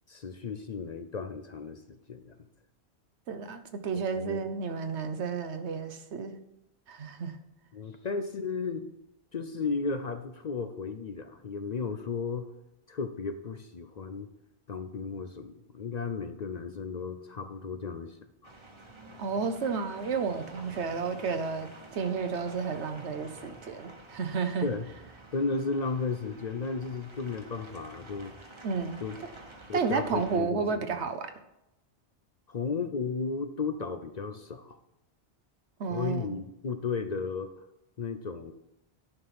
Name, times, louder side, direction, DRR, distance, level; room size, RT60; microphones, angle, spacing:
voice 1, 0.1-2.5 4.1-4.4 7.7-8.9 9.3-12.5 12.9-14.3 14.7-18.2 18.4-18.5 24.6-24.9 25.3-28.4 29.0-29.2 29.7-30.8 32.5-34.8 35.9-37.5 38.0-38.5, left 4 dB, 50° left, 9 dB, 0.6 m, -34 dB
voice 2, 3.3-6.3 6.9-7.4 19.2-24.7 28.6-29.0 29.7-31.3 35.8-36.4, right 5 dB, 85° right, 9 dB, 1.2 m, -32 dB
sound 1, 18.4-30.4, right 2 dB, 25° right, 1.2 m, -49 dB
10.5 x 5.6 x 5.9 m, 0.87 s
omnidirectional pair, 1.1 m